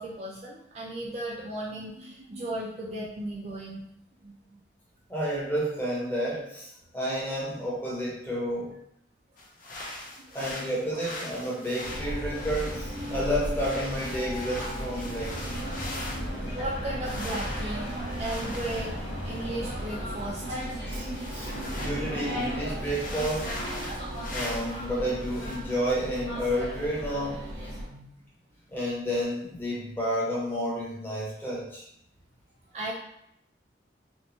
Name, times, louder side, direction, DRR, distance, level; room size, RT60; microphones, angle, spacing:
voice 1, 0.0-3.8 4.2-4.6 10.2-10.5 10.9-11.0 16.3-17.9 18.2-18.9 19.2-21.0 27.9-28.1 32.7-32.9, right 1 dB, 35° right, -4 dB, 0.4 m, -36 dB
voice 2, 5.1-8.7 10.3-15.6 20.9-21.1 21.3-23.5 24.3-27.5 28.7-31.8, equal, 10° left, -6 dB, 0.7 m, -31 dB
sound 1, 9.4-16.4 17.0-22.0 22.3-22.4 22.7-24.9 25.2-25.6, left 1 dB, 45° left, 0.4 m, -41 dB
sound 2, 11.8-27.8, equal, 60° right, 0.9 m, -35 dB
sound 3, 15.1-20.9, equal, 80° left, 0.7 m, -39 dB
2.8 x 2.1 x 2.6 m, 0.77 s
head